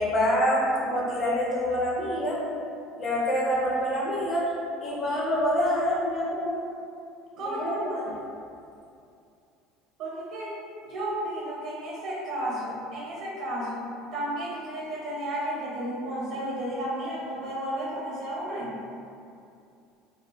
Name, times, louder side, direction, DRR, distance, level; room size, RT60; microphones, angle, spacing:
voice 1, 0.0-2.4 3.0-4.5 4.8-6.6 7.4-7.7 8.1-8.2, equal, 35° left, -5 dB, 0.7 m, -26 dB
voice 2, 7.4-8.1 10.0-10.5 10.8-13.9 14.1-18.8, right 1 dB, 65° right, -6 dB, 0.7 m, -33 dB
3.4 x 2.1 x 2.2 m, 2.5 s
hypercardioid pair, 80°, 0 cm